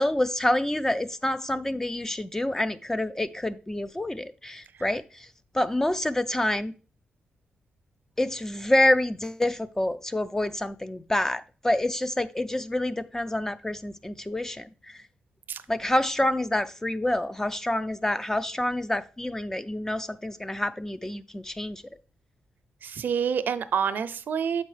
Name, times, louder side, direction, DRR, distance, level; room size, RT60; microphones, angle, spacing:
voice 1, 0.0-5.0 5.5-6.7 8.2-14.7 15.7-21.8, left 1 dB, 15° left, 0.3 m, -27 dB
voice 2, 22.8-24.6, right 7 dB, 60° right, 0.5 m, -27 dB
6.9 x 5.3 x 3.2 m
cardioid pair, 100°, 4 cm